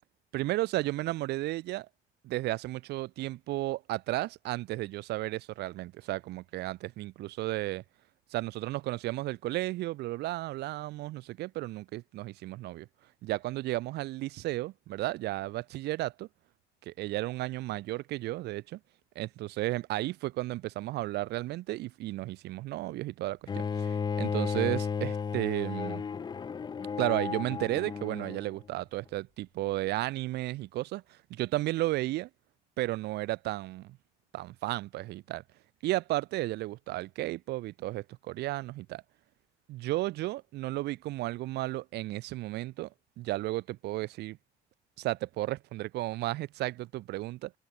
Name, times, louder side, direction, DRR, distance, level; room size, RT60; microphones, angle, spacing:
voice 1, 0.3-1.9 2.2-7.8 8.3-12.9 13.2-16.3 16.8-18.8 19.2-26.0 27.0-32.3 32.8-34.0 34.3-35.4 35.8-39.0 39.7-42.9 43.2-44.4 45.0-47.5, right 17 dB, 80° right, 2.0 m, -33 dB
Bowed string instrument, 23.5-28.5, left 6 dB, 25° left, 0.6 m, -33 dB
cardioid pair, 110°, 17 cm